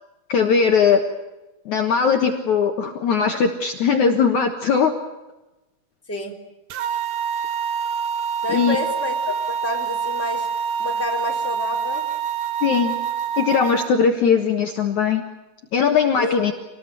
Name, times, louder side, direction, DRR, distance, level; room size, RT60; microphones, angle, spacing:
voice 1, 0.3-1.0 1.7-4.9 8.5-8.8 12.6-13.0 13.4-15.2 15.7-16.5, left 6 dB, 60° left, 4 dB, 2.5 m, -19 dB
sound 1, 6.7-13.9, right 7 dB, 85° right, 3.4 m, -26 dB
voice 2, 8.4-10.5 10.8-12.1 16.2-16.5, left 2 dB, 5° left, 1 dB, 2.9 m, -29 dB
27.0 x 19.5 x 9.2 m, 1.0 s
omnidirectional pair, 4.5 m